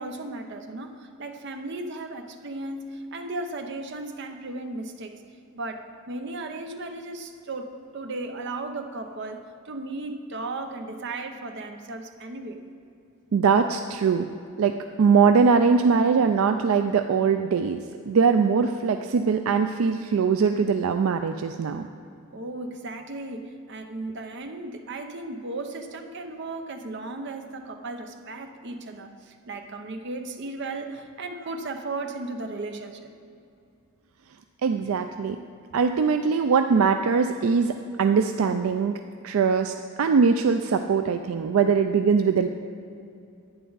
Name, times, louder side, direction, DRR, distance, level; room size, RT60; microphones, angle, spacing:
voice 1, 0.0-5.1 5.6-12.6 22.3-33.1, right 2 dB, 55° right, 5 dB, 0.8 m, -35 dB
voice 2, 13.3-14.3 14.6-21.9 34.6-35.4 35.7-42.5, right 5 dB, 75° right, 7 dB, 0.4 m, -22 dB
11.0 x 9.2 x 4.0 m, 2.5 s
head